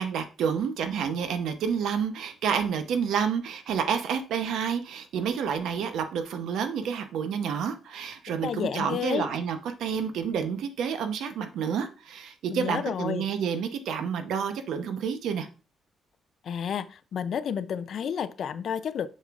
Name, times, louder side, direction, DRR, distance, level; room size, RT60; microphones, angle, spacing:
voice 1, 0.0-15.5, right 7 dB, 85° right, 0.9 m, -29 dB
voice 2, 8.4-9.3 12.5-13.3 16.4-19.1, left 8 dB, 60° left, 0.5 m, -31 dB
6.8 x 6.5 x 2.5 m
cardioid pair, 135°, 0 cm